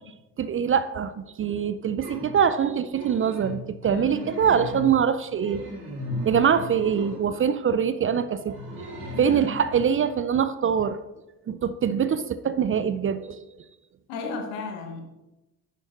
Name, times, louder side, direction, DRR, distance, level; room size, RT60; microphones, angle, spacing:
voice 1, 0.4-5.8 6.3-11.0 11.5-13.4, right 7 dB, 30° right, 13 dB, 0.5 m, -24 dB
sound 1, 2.0-2.4 2.9-3.6 4.0-5.0 5.3-7.2 8.4-9.8, left 1 dB, 80° right, 2.6 m, -36 dB
voice 2, 3.8-4.3 9.1-9.6 14.1-15.0, left 4 dB, 70° left, 4 dB, 1.3 m, -35 dB
11.0 x 8.7 x 2.5 m, 1.0 s
figure-of-eight pair, 40°, 44 cm